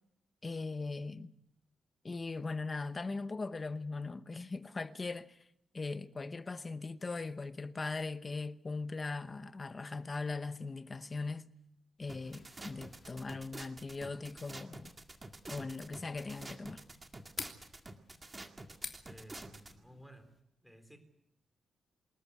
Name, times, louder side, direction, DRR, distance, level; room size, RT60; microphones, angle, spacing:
voice 1, 0.4-1.3 2.0-5.4 5.7-11.5 12.0-14.9 15.5-16.8, left 3 dB, 25° left, 0.9 m, -39 dB
sound 1, 12.0-20.4, left 5 dB, 40° left, 3.1 m, -52 dB
sound 2, 12.1-19.7, right 2 dB, 20° right, 2.0 m, -48 dB
voice 2, 19.0-20.3 20.6-21.0, equal, ahead, 3.8 m, -55 dB
27.0 x 14.0 x 9.6 m
wide cardioid pair, 165°, 0 cm